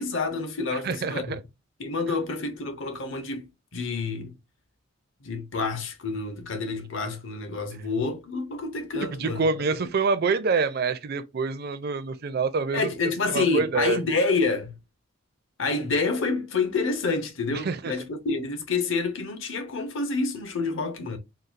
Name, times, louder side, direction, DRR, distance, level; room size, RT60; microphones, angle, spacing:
voice 1, 0.0-1.4 1.8-3.5 3.7-4.3 5.2-9.5 12.7-14.8 15.6-21.2, left 3 dB, 60° left, 0.8 m, -28 dB
voice 2, 0.7-1.4 9.2-12.9 13.3-14.0 17.5-17.9, right 4 dB, 45° right, 0.4 m, -26 dB
4.0 x 2.3 x 2.4 m
head